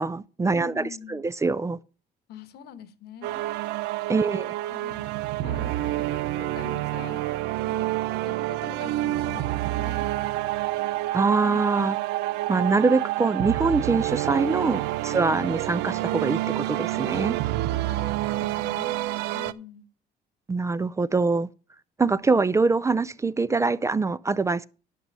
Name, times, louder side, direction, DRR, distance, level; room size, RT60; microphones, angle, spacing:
voice 1, 0.0-0.8 1.1-1.8 4.1-4.5 11.1-12.0 12.5-17.4 20.5-21.5 22.0-24.7, right 3 dB, 15° right, 0.4 m, -24 dB
voice 2, 0.6-1.2 2.3-3.5 4.2-4.4 4.7-5.1 5.4-7.2 7.6-7.9 8.2-10.2 11.4-11.7 15.1-15.6 17.2-17.3 17.6-19.9, left 8 dB, 75° left, 1.2 m, -44 dB
sound 1, 3.2-19.5, right 16 dB, 90° right, 0.5 m, -28 dB
11.0 x 6.2 x 5.3 m
cardioid pair, 110°, 17 cm